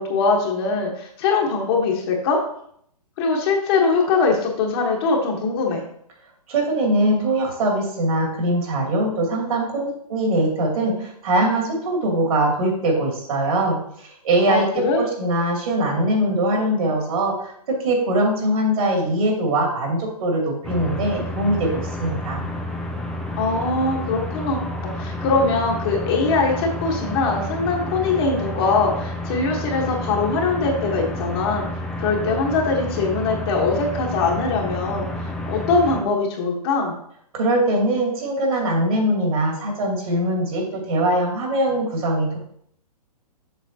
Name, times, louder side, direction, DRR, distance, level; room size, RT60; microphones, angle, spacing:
voice 1, 0.0-2.4 3.2-5.8 14.5-15.0 23.4-31.6 32.0-36.9, left 4 dB, 40° left, 0 dB, 1.4 m, -22 dB
voice 2, 6.5-21.7 22.0-22.4 37.3-42.4, right 1 dB, 60° right, -1 dB, 2.7 m, -22 dB
sound 1, 20.6-36.0, left 1 dB, ahead, 0.4 m, -30 dB
7.3 x 6.1 x 2.9 m, 0.68 s
hypercardioid pair, 145°, 21 cm